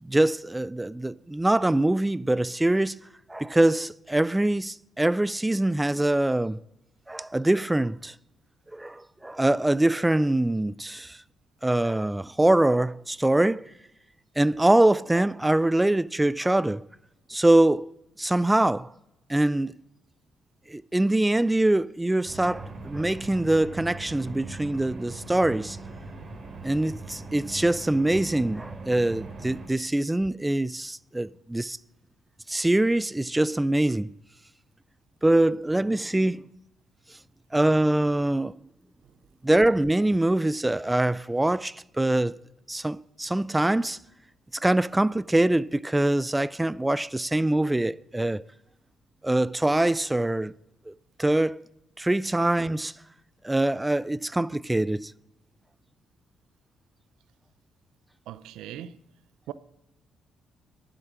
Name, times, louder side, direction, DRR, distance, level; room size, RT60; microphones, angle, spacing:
voice 1, 0.0-3.0 3.3-6.6 7.1-8.1 8.7-11.2 11.6-13.7 14.4-16.9 17.3-17.9 18.2-18.9 19.3-19.8 20.7-25.8 26.6-31.8 32.5-34.1 35.2-36.4 37.5-38.5 39.4-42.4 42.7-44.0 44.5-48.4 49.2-50.5 50.9-51.0 51.2-51.6 52.0-52.9 53.4-55.1, right 1 dB, 10° right, 0.3 m, -24 dB
sound 1, 22.3-29.7, right 3 dB, 35° right, 2.9 m, -40 dB
voice 2, 58.3-59.0 59.5-59.6, right 11 dB, 90° right, 0.5 m, -40 dB
11.5 x 7.5 x 6.0 m
cardioid pair, 90°, 0 cm